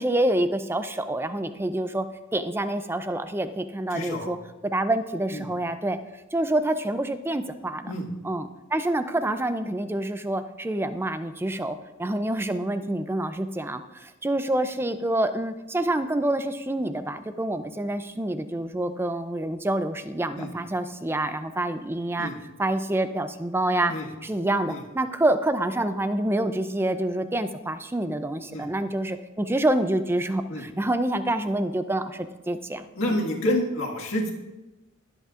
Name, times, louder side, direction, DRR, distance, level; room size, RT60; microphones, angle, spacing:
voice 1, 0.0-2.1 2.3-4.4 4.6-6.0 6.3-7.9 8.2-22.3 22.6-23.9 24.2-33.2, right 1 dB, 10° right, 10 dB, 0.4 m, -27 dB
voice 2, 3.9-4.3 5.3-5.5 7.9-8.1 20.4-20.5 22.2-22.4 23.9-24.1 24.7-24.8 28.5-28.7 30.5-30.6 33.0-34.3, left 1 dB, 75° left, -1 dB, 1.8 m, -28 dB
20.5 x 8.1 x 2.5 m, 1.1 s
head